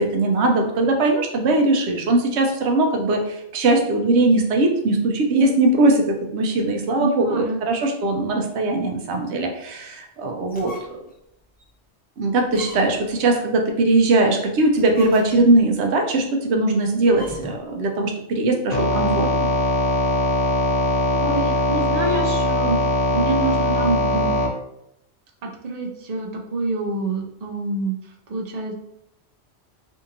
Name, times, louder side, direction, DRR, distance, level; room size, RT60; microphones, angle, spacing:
voice 1, 0.0-10.7 12.2-19.5, right 2 dB, 75° right, 2 dB, 0.8 m, -20 dB
voice 2, 7.0-7.6 21.2-24.3 25.4-28.7, right 2 dB, 55° right, 1 dB, 0.5 m, -27 dB
sound 1, 10.4-11.1 11.6-11.7 12.5-13.2 14.6-15.7 17.1-17.7, left 1 dB, 15° left, 0.3 m, -40 dB
sound 2, 18.7-24.5, left 1 dB, 65° left, 0.7 m, -21 dB
2.7 x 2.6 x 2.6 m, 0.79 s
omnidirectional pair, 1.2 m